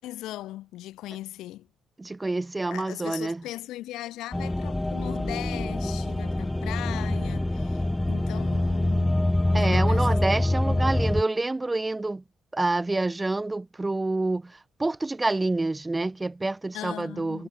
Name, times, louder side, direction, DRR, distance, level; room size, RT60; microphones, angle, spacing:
voice 1, 0.0-1.7 2.7-9.1 9.5-10.2 10.7-10.8 16.7-17.5, left 15 dB, 90° left, 6.9 m, -39 dB
voice 2, 2.0-3.4 9.5-12.2 12.5-17.5, right 2 dB, 20° right, 1.8 m, -27 dB
sound 1, 4.3-11.2, left 1 dB, 10° left, 1.1 m, -25 dB
cardioid pair, 90°, 0 cm